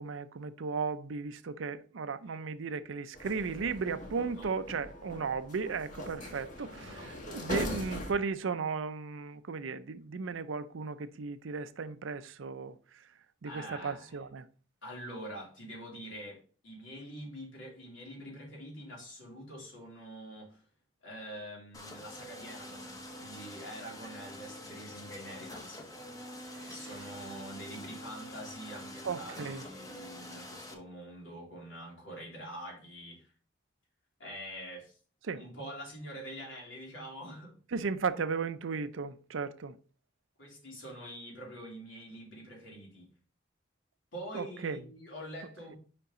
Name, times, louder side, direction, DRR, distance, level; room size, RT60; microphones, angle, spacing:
voice 1, 0.0-7.0 7.3-12.8 13.4-14.5 26.6-26.7 29.0-29.6 35.3-35.4 37.7-39.8 44.3-44.8, right 5 dB, 85° right, 0.5 m, -35 dB
sound 1, 3.1-8.1, left 1 dB, 40° left, 1.5 m, -41 dB
voice 2, 6.6-7.2 13.4-14.2 14.8-20.6 21.0-25.9 26.6-33.3 34.2-35.0 35.3-37.6 40.4-43.1 44.1-45.8, equal, 80° left, 3.1 m, -45 dB
sound 2, 21.7-30.7, left 1 dB, 20° left, 0.8 m, -46 dB
5.5 x 5.2 x 3.7 m
head